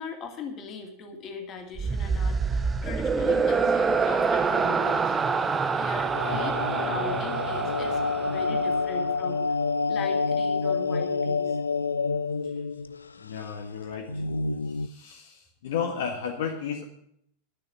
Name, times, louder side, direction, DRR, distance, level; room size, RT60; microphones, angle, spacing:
voice 1, 0.0-5.1 5.7-9.4 9.9-11.6, left 4 dB, 30° left, 3 dB, 2.5 m, -39 dB
sound 1, 1.8-9.1, right 5 dB, 15° right, 0.7 m, -26 dB
sound 2, 6.1-13.1 13.4-13.5 14.1-14.9, left 4 dB, 75° left, 0.5 m, -28 dB
voice 2, 13.2-14.2 14.7-16.8, left 7 dB, 60° left, 1 dB, 1.6 m, -33 dB
12.0 x 6.5 x 9.6 m, 0.71 s
figure-of-eight pair, 90°, 0 cm